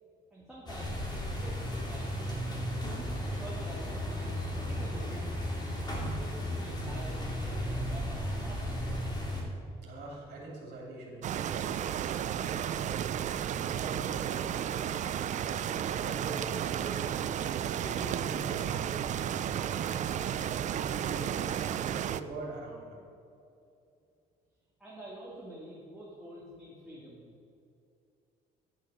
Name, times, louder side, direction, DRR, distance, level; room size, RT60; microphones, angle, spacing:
voice 1, 0.3-2.8 3.2-5.4 5.8-9.3 24.8-27.3, right 1 dB, 5° right, -8 dB, 2.2 m, -48 dB
sound 1, 0.7-9.4, equal, 25° left, 2.2 m, -35 dB
voice 2, 9.8-13.1 13.7-15.2 16.0-17.1 17.7-19.0 19.9-21.6 21.9-23.0, right 2 dB, 65° right, -2 dB, 2.5 m, -45 dB
sound 2, 11.2-22.2, right 9 dB, 45° right, 0.4 m, -33 dB
10.5 x 6.3 x 5.5 m, 2.6 s
cardioid pair, 110°, 17 cm